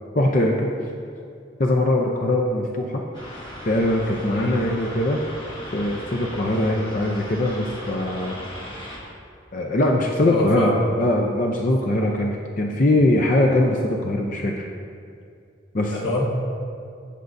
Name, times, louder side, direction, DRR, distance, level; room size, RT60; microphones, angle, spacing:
voice 1, 0.1-0.7 1.6-3.0 3.6-5.2 5.7-8.4 9.5-10.7 11.0-14.7 15.7-16.1, left 1 dB, 40° left, 1 dB, 0.6 m, -21 dB
sound 1, 3.1-9.0, equal, 25° left, 1.5 m, -37 dB
voice 2, 10.2-11.1 15.9-16.2, left 1 dB, 75° left, -3 dB, 1.5 m, -25 dB
15.5 x 6.6 x 2.6 m, 2.4 s
head